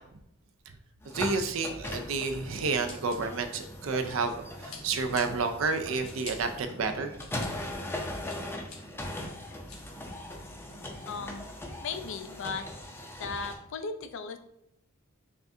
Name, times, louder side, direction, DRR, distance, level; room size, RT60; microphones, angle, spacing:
sound 1, 1.0-13.6, left 1 dB, 10° left, 0.5 m, -40 dB
voice 1, 1.0-7.3, right 4 dB, 70° right, 7 dB, 0.5 m, -30 dB
Scissors, 2.8-4.3 4.7-5.2 5.7-6.3 6.9-7.5 7.9-8.8 9.3-9.8, left 5 dB, 85° left, 1.5 m, -47 dB
sound 2, 3.0-11.2, right 1 dB, 25° right, 0.7 m, -54 dB
voice 2, 11.1-11.5 11.8-12.6 13.2-14.4, left 5 dB, 65° left, 9 dB, 0.4 m, -36 dB
5.5 x 2.5 x 2.7 m, 0.76 s
head